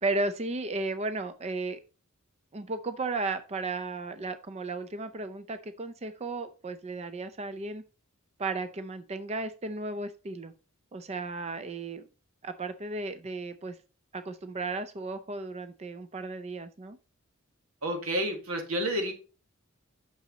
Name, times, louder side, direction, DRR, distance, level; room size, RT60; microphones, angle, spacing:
voice 1, 0.0-1.8 2.5-7.8 8.4-10.5 10.9-12.1 12.4-13.8 14.1-17.0, right 3 dB, 30° right, 11 dB, 0.5 m, -34 dB
voice 2, 17.8-19.1, right 1 dB, 90° right, 4 dB, 2.3 m, -30 dB
8.4 x 6.2 x 4.0 m, 0.35 s
head